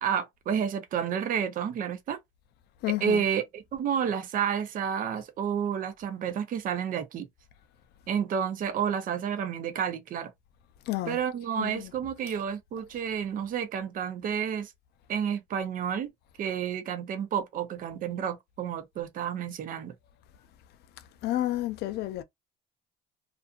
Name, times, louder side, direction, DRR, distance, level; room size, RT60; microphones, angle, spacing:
voice 1, 0.0-2.2 3.0-7.3 8.1-10.3 11.1-14.7 15.1-16.1 16.4-19.9, right 8 dB, 55° right, 0.6 m, -30 dB
voice 2, 2.8-3.2 10.9-11.2 11.6-11.8 21.2-22.2, left 15 dB, 75° left, 0.4 m, -30 dB
2.5 x 2.4 x 2.4 m
cardioid pair, 110°, 17 cm